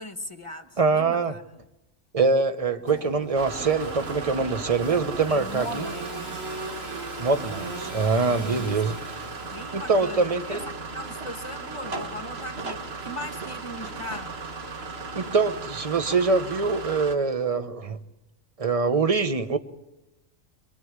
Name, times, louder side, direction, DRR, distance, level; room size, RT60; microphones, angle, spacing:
voice 1, 0.0-1.7 5.3-6.5 8.4-9.1 9.4-10.6 10.9-14.4, left 1 dB, 25° left, 1.4 m, -39 dB
voice 2, 0.8-1.3 2.1-5.8 7.2-9.0 9.7-10.6 15.1-18.0 18.6-19.6, right 4 dB, 30° right, 1.1 m, -24 dB
Engine / Sawing, 2.8-11.1, right 1 dB, 90° right, 6.2 m, -40 dB
sound 1, 3.3-17.1, right 4 dB, 50° right, 1.7 m, -36 dB
24.5 x 23.0 x 9.7 m
omnidirectional pair, 1.4 m